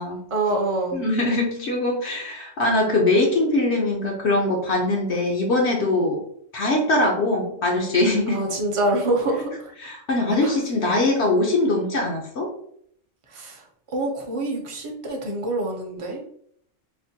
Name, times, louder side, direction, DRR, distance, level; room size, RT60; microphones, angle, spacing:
voice 1, 0.3-1.0 8.3-9.7 10.4-10.6 13.3-13.6 13.9-16.2, right 2 dB, 35° right, 0 dB, 0.5 m, -26 dB
voice 2, 0.9-6.2 6.5-8.4 9.8-12.5, left 2 dB, 65° left, -1 dB, 0.9 m, -22 dB
4.3 x 2.1 x 2.7 m, 0.67 s
omnidirectional pair, 1.3 m